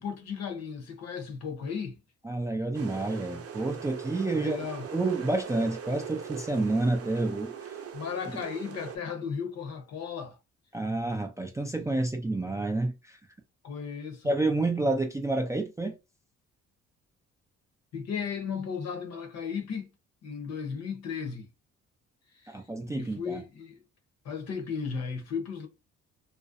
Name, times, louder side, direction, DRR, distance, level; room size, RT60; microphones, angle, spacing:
voice 1, 0.0-2.0 4.3-4.9 7.9-10.4 13.6-14.3 17.9-19.9 20.2-21.5 22.3-22.6 22.9-23.8 24.2-25.7, left 6 dB, 60° left, 0.8 m, -35 dB
voice 2, 2.2-4.7 4.9-7.5 10.7-13.2 14.2-16.0 22.5-23.4, right 2 dB, 10° right, 0.3 m, -29 dB
sound 1, 2.7-9.0, right 7 dB, 50° right, 0.6 m, -40 dB
2.5 x 2.0 x 2.5 m
cardioid pair, 90°, 30 cm